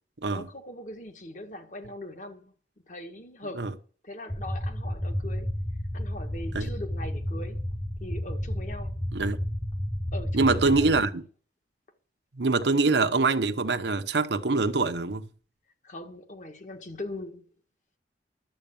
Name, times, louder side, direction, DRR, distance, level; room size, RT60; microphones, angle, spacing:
voice 1, 0.3-2.5 2.9-3.8 4.0-5.5 5.9-7.7 8.0-8.9 10.1-11.1 15.8-17.4, left 1 dB, 45° left, 1.7 m, -41 dB
sound 1, 4.3-11.0, equal, 20° left, 1.1 m, -32 dB
voice 2, 10.3-11.2 12.3-15.3, right 3 dB, 80° right, 0.9 m, -24 dB
11.5 x 7.9 x 7.0 m
head